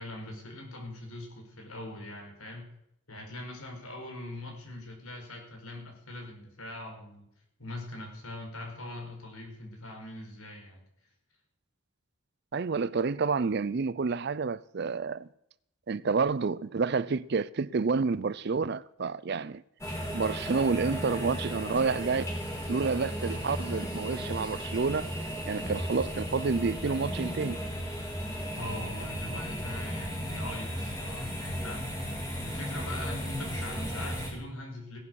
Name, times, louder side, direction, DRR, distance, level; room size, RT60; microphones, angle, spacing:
voice 1, 0.0-2.7 3.1-7.2 7.6-10.8 28.5-31.8 32.4-35.0, left 1 dB, 90° left, 4.9 m, -41 dB
voice 2, 12.5-15.3 15.9-19.6 20.1-22.2 22.7-25.1 25.5-27.6, right 4 dB, 50° right, 0.4 m, -29 dB
sound 1, 19.8-34.3, equal, 15° left, 3.8 m, -35 dB
17.0 x 11.0 x 6.4 m
head